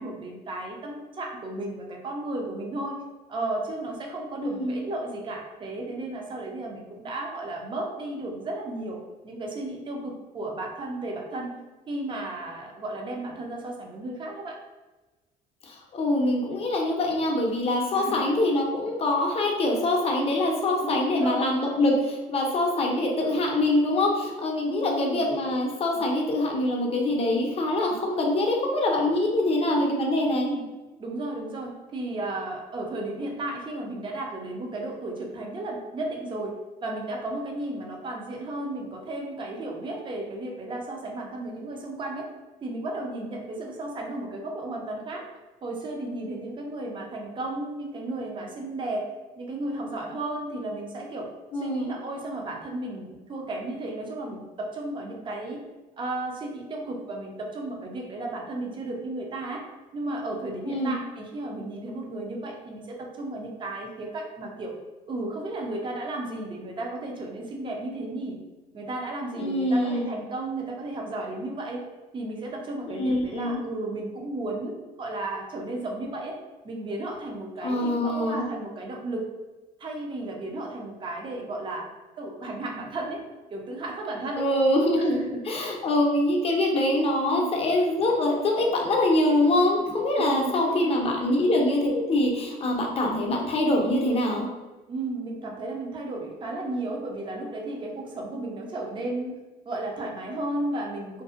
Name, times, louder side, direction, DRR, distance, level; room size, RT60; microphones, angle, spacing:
voice 1, 0.0-3.0 3.3-11.5 11.9-14.6 17.9-18.3 20.8-21.5 24.7-25.2 30.3-30.7 31.0-36.6 36.8-42.3 42.6-45.2 45.6-49.1 49.4-51.3 51.6-55.6 56.0-59.6 59.9-64.7 65.1-68.4 68.7-71.8 72.1-76.4 76.6-79.3 79.8-81.9 82.2-83.2 83.5-84.5 85.0-85.8 87.2-87.6 90.2-91.0 94.9-99.4 99.7-101.2, right 2 dB, 30° right, 0 dB, 0.5 m, -34 dB
voice 2, 4.4-4.9 15.6-30.5 51.5-51.9 60.6-61.0 69.3-70.1 73.0-73.6 77.6-78.4 84.3-85.1 85.5-94.5, left 1 dB, 35° left, 0 dB, 0.5 m, -24 dB
2.5 x 2.1 x 2.4 m, 1.2 s
cardioid pair, 110°, 17 cm